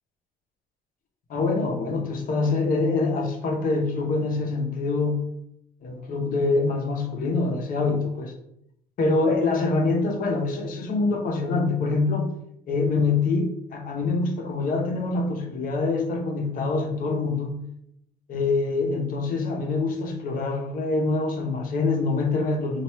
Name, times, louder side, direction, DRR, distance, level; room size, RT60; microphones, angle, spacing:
voice 1, 1.3-5.3 5.8-8.3 9.0-12.3 12.7-17.6 18.3-22.8, left 3 dB, 55° left, 3 dB, 0.8 m, -25 dB
3.1 x 2.5 x 4.4 m, 0.76 s
cardioid pair, 110°, 17 cm